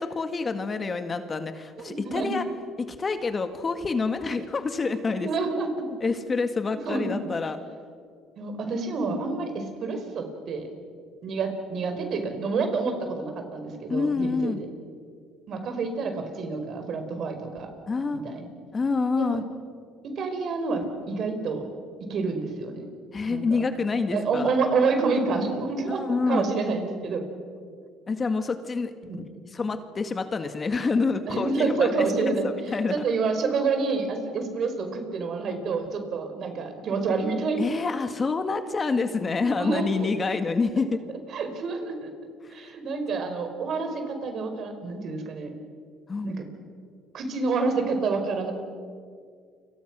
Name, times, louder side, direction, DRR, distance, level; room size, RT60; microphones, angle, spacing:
voice 1, 0.0-2.4 2.8-5.3 5.9-7.6 13.9-14.6 17.9-18.2 18.7-19.4 23.1-24.6 25.9-26.5 28.1-28.9 29.5-32.1 32.7-33.0 37.6-41.0 42.4-42.5 46.1-46.4, left 4 dB, 30° left, 8 dB, 1.8 m, -27 dB
voice 2, 1.8-2.3 5.1-5.9 6.8-7.3 8.4-10.7 11.2-14.7 15.5-17.7 18.1-18.5 19.2-19.4 20.0-21.7 22.0-22.8 23.3-23.6 24.1-26.0 26.3-27.2 29.1-29.2 31.3-32.5 32.9-37.7 39.6-40.1 41.3-42.1 42.5-45.5 46.2-46.5 47.1-48.5, right 4 dB, 55° right, 6 dB, 5.0 m, -28 dB
29.5 x 25.0 x 6.3 m, 2.1 s
supercardioid pair, 100°, 0 cm